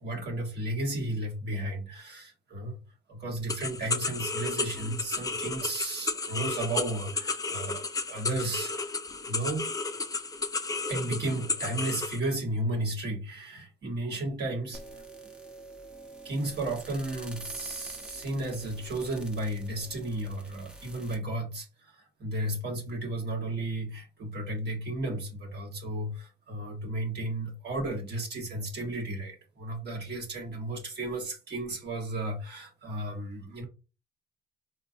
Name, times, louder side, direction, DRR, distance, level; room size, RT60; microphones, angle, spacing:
voice 1, 0.0-2.8 3.1-8.9 9.3-9.6 10.9-14.8 16.2-21.9 22.2-33.6, right 1 dB, 60° right, 1.2 m, -33 dB
sound 1, 3.5-12.2, left 3 dB, 20° left, 0.4 m, -33 dB
sound 2, 14.7-21.2, right 1 dB, 5° right, 0.7 m, -47 dB
3.8 x 2.3 x 2.6 m
cardioid pair, 90°, 20 cm